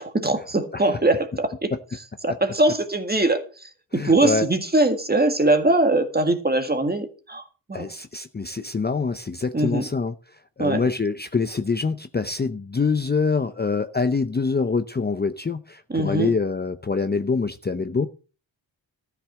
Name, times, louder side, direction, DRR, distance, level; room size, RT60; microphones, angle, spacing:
voice 1, 0.0-1.7 2.2-7.4 7.7-7.9 9.5-9.9 10.6-10.8 15.9-16.3, right 2 dB, 20° right, 1.9 m, -22 dB
voice 2, 3.9-4.5 7.7-18.1, left 4 dB, 20° left, 0.6 m, -25 dB
13.5 x 5.9 x 7.5 m
wide cardioid pair, 110°, 45 cm